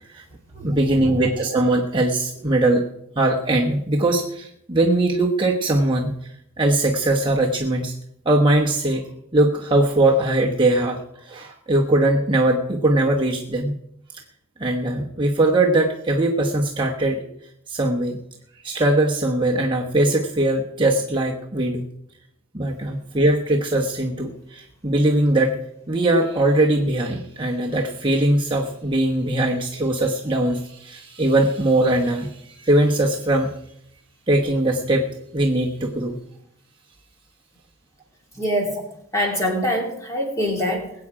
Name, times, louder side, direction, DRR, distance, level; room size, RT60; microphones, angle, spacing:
voice 1, 0.5-2.8 3.2-8.0 8.2-13.8 14.1-14.2 14.6-17.2 17.7-18.2 18.6-21.9 22.5-25.6 25.9-33.6 34.3-36.2, right 1 dB, 20° right, -1 dB, 1.1 m, -21 dB
voice 2, 38.3-38.8 39.1-40.9, equal, 15° left, 0 dB, 3.1 m, -24 dB
21.0 x 8.7 x 4.8 m, 0.76 s
head